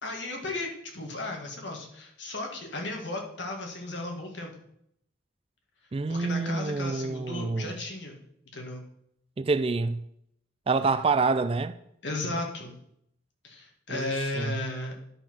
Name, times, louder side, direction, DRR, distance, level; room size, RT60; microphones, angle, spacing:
voice 1, 0.0-4.5 6.1-8.2 8.5-8.8 12.0-12.8 13.4-14.9, left 2 dB, 65° left, 1.8 m, -35 dB
voice 2, 5.9-7.7 9.4-10.0 10.7-11.7 13.9-14.5, right 4 dB, 30° right, 0.3 m, -27 dB
10.5 x 4.6 x 5.9 m
head